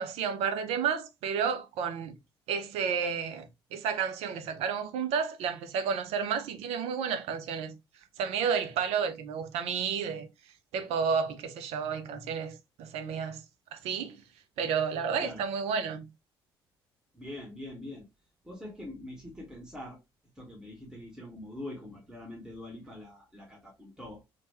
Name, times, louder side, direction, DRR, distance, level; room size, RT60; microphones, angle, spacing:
voice 1, 0.0-2.2 2.5-7.8 8.2-10.3 10.7-13.4 13.7-14.2 14.6-16.1, right 6 dB, 55° right, 0.5 m, -31 dB
voice 2, 15.2-15.5 17.1-18.0 18.4-20.0 20.4-24.2, left 1 dB, 5° right, 1.0 m, -44 dB
3.0 x 2.1 x 2.8 m
figure-of-eight pair, 50°, 13 cm